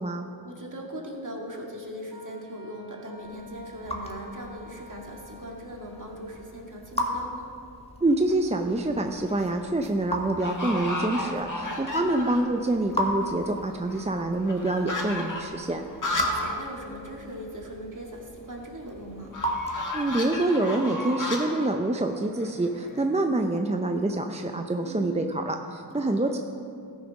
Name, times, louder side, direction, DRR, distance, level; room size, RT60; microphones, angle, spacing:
voice 1, 0.4-7.5 11.7-12.2 16.1-19.4 24.8-25.2 25.9-26.4, equal, 45° right, -1 dB, 2.0 m, -40 dB
Wind instrument woodwind instrument, 2.1-6.5, equal, 90° right, 1.9 m, -51 dB
Raindrop / Drip, 3.2-20.3, equal, 15° left, 1.6 m, -37 dB
voice 2, 8.0-15.8 19.9-26.4, right 2 dB, 15° right, 4 dB, 0.6 m, -26 dB
sound 1, 8.1-8.5 9.1-9.5 9.8-9.9 10.4-12.6 12.9-13.0 13.2-16.6 16.9-17.0 17.3-17.4 19.3-23.0, left 1 dB, 45° left, 1.7 m, -34 dB
13.5 x 6.0 x 5.2 m, 2.4 s
cardioid pair, 45°, 42 cm